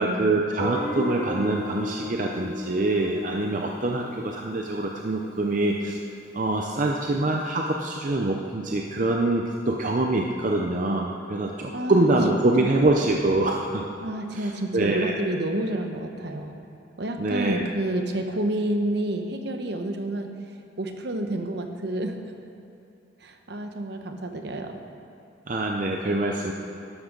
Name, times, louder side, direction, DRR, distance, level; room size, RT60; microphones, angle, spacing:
voice 1, 0.0-6.0 6.3-13.8 14.3-15.1 17.2-17.6 25.5-26.5, right 2 dB, 45° right, 1 dB, 0.6 m, -25 dB
Guitar, 0.6-5.5, left 1 dB, 5° left, 1.1 m, -35 dB
voice 2, 11.7-12.1 12.6-12.8 14.0-16.5 17.0-20.3 20.8-22.2 23.2-24.8, right 1 dB, 60° right, 5 dB, 0.9 m, -29 dB
12.0 x 11.5 x 3.9 m, 2.7 s
head